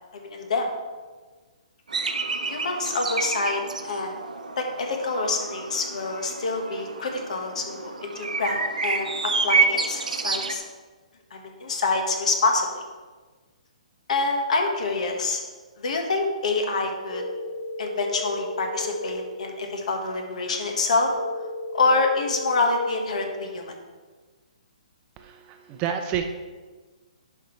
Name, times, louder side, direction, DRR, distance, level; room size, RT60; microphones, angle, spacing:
voice 1, 0.1-0.7 2.5-4.2 4.6-10.6 11.3-12.8 14.1-15.4 15.8-17.2 17.8-21.1 21.7-23.8, left 3 dB, 65° left, 3 dB, 1.5 m, -26 dB
sound 1, 1.9-10.6, right 4 dB, 90° right, 0.7 m, -29 dB
sound 2, 17.1-19.1 21.1-23.1, left 1 dB, 85° left, 2.5 m, -34 dB
voice 2, 25.2-26.2, right 8 dB, 25° right, 5 dB, 0.6 m, -29 dB
10.5 x 5.6 x 3.2 m, 1.4 s
hypercardioid pair, 145°, 4 cm